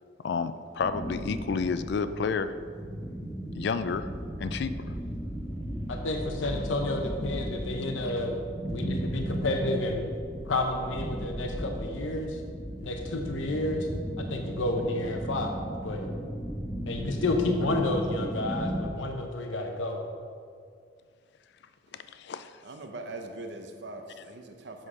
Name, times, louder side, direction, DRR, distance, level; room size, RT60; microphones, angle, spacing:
voice 1, 0.2-2.5 3.5-4.1 4.4-5.0 21.9-22.5, left 5 dB, 60° left, 12 dB, 0.4 m, -30 dB
sound 1, 0.8-18.9, right 1 dB, 20° left, 1.2 m, -36 dB
voice 2, 5.9-8.4 8.7-10.1 10.4-12.4 12.8-13.9 14.2-15.5 15.8-16.1 16.9-20.0, left 2 dB, 90° left, 3 dB, 0.7 m, -30 dB
voice 3, 21.9-22.2 22.6-24.9, right 2 dB, 65° right, 5 dB, 0.8 m, -42 dB
7.5 x 6.4 x 4.9 m, 2.1 s
head